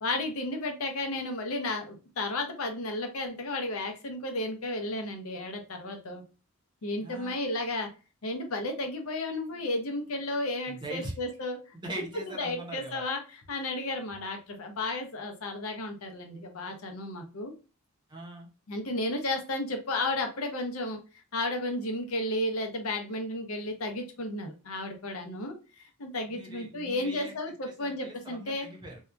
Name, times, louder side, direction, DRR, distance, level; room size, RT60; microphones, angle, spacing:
voice 1, 0.0-6.2 6.8-7.9 8.2-11.6 12.3-17.5 18.7-21.0 21.3-28.7, left 2 dB, 80° left, 4 dB, 0.7 m, -33 dB
voice 2, 7.0-7.4 10.7-11.1 11.7-13.0 18.1-18.5 26.3-27.3 27.8-29.0, right 1 dB, 20° right, -1 dB, 0.7 m, -41 dB
2.7 x 2.3 x 2.2 m, 0.33 s
head